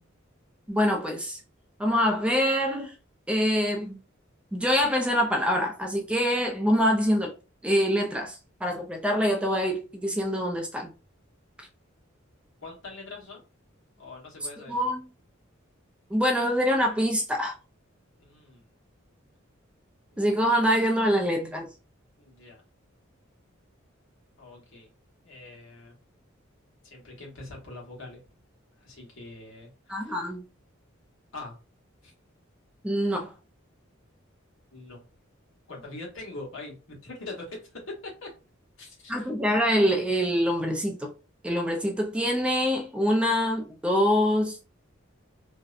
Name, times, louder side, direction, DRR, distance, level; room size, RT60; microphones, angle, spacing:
voice 1, 0.7-1.4 1.8-2.9 3.3-4.0 4.5-7.3 7.6-10.9 14.7-15.1 16.1-17.5 20.2-21.7 29.9-30.4 32.8-33.3 39.1-41.1 41.4-44.6, equal, 5° right, 0.3 m, -25 dB
voice 2, 12.6-13.4 14.0-14.8 18.2-18.6 20.1-20.4 22.2-22.6 24.4-24.9 25.2-25.9 26.8-28.2 28.8-30.2 31.3-31.5 32.0-32.1 34.7-35.0 35.7-38.3 38.8-39.3, left 2 dB, 70° left, 1.0 m, -43 dB
2.6 x 2.0 x 2.4 m
head